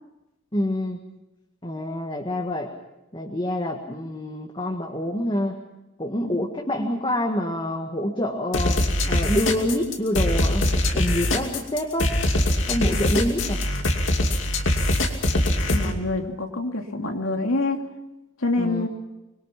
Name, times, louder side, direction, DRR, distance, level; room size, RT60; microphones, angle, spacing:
voice 1, 0.5-1.0 1.6-2.7 3.1-5.5 6.0-8.8 9.1-10.6 10.9-12.1 12.7-13.6 18.6-18.9, left 1 dB, 25° left, 1 dB, 1.8 m, -26 dB
sound 1, 8.5-15.9, left 1 dB, 70° left, 2.6 m, -22 dB
voice 2, 15.7-17.8 18.4-18.9, left 2 dB, 90° left, 3 dB, 2.9 m, -26 dB
25.0 x 22.5 x 5.9 m, 0.96 s
head